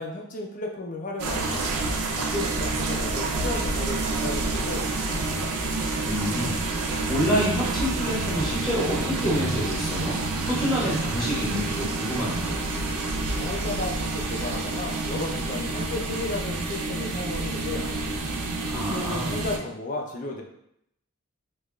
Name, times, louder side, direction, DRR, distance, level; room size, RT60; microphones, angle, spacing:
voice 1, 0.0-1.8 2.1-5.3 13.3-18.1 18.7-20.4, left 2 dB, 35° left, 1 dB, 0.4 m, -34 dB
sound 1, 1.2-19.6, right 3 dB, 90° right, 0.4 m, -28 dB
voice 2, 6.0-6.7 7.1-10.2 10.5-12.6 18.7-19.3, equal, ahead, -8 dB, 1.3 m, -27 dB
4.6 x 2.3 x 2.3 m, 0.76 s
head